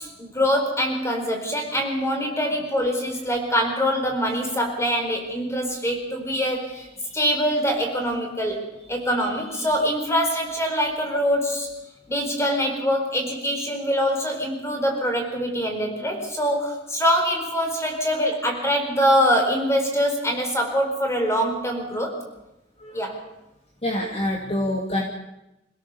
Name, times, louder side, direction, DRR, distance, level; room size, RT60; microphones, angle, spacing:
voice 1, 0.0-6.8 7.1-11.8 12.1-22.1 22.9-23.2, equal, 15° left, 3 dB, 4.5 m, -24 dB
voice 2, 22.8-23.1 23.8-25.0, left 1 dB, 30° left, 1 dB, 2.4 m, -26 dB
27.0 x 17.0 x 7.0 m, 0.93 s
head